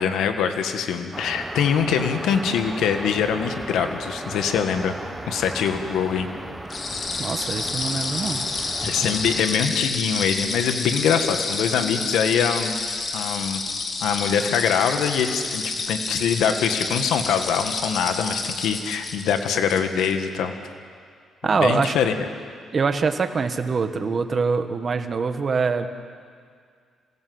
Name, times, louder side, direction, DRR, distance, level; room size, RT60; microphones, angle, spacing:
voice 1, 0.0-4.9 5.3-6.3 8.8-12.8 13.1-13.6 14.0-20.5 21.5-22.1, left 7 dB, 80° left, 6 dB, 1.7 m, -23 dB
sound 1, 1.1-9.5, right 1 dB, 10° right, 1.0 m, -36 dB
sound 2, 6.7-20.1, left 3 dB, 45° left, 3.0 m, -29 dB
voice 2, 7.2-8.5 21.4-22.0 22.7-25.9, right 5 dB, 40° right, 8 dB, 1.6 m, -24 dB
27.0 x 17.0 x 7.9 m, 2.1 s
cardioid pair, 90°, 0 cm